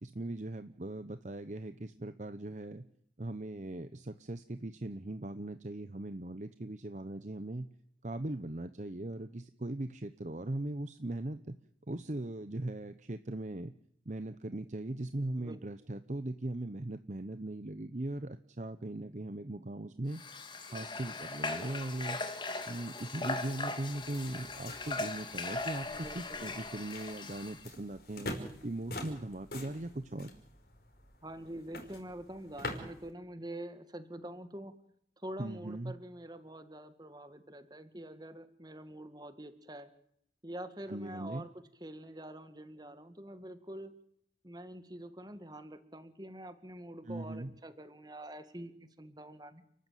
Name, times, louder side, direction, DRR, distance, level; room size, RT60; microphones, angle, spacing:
voice 1, 0.0-2.8 3.2-7.7 8.0-11.6 11.9-13.7 14.0-20.2 20.7-22.2 22.6-28.3 28.6-30.3 35.4-35.9 40.9-41.4 47.0-47.5, right 1 dB, 40° right, 11 dB, 0.9 m, -39 dB
Water / Water tap faucet, 20.1-27.6, left 3 dB, 25° left, 2.2 m, -39 dB
sound 1, 23.9-33.1, left 1 dB, 60° left, 5.2 m, -46 dB
voice 2, 25.9-26.4 31.2-34.7 35.2-39.9 40.4-41.5 41.8-43.9 44.4-49.6, right 1 dB, 25° right, 10 dB, 2.0 m, -46 dB
30.0 x 14.0 x 9.2 m, 0.72 s
head